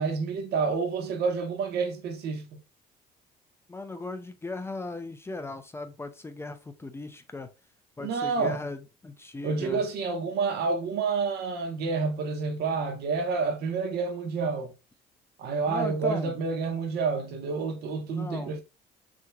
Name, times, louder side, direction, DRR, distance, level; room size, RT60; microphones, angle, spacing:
voice 1, 0.0-2.5 8.0-8.6 9.4-14.7 15.4-18.6, right 4 dB, 75° right, 1.3 m, -29 dB
voice 2, 3.7-7.5 8.0-9.8 15.7-16.3 18.1-18.6, left 2 dB, 15° left, 0.5 m, -37 dB
6.1 x 3.0 x 2.4 m
cardioid pair, 110°, 17 cm